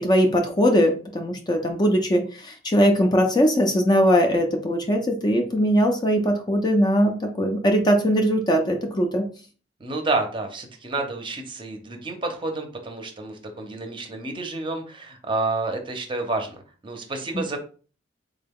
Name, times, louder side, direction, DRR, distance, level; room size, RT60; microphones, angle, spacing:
voice 1, 0.0-9.3, equal, 20° left, 4 dB, 0.5 m, -20 dB
voice 2, 9.8-17.6, right 3 dB, 25° right, 4 dB, 0.6 m, -29 dB
3.6 x 2.2 x 3.5 m, 0.38 s
head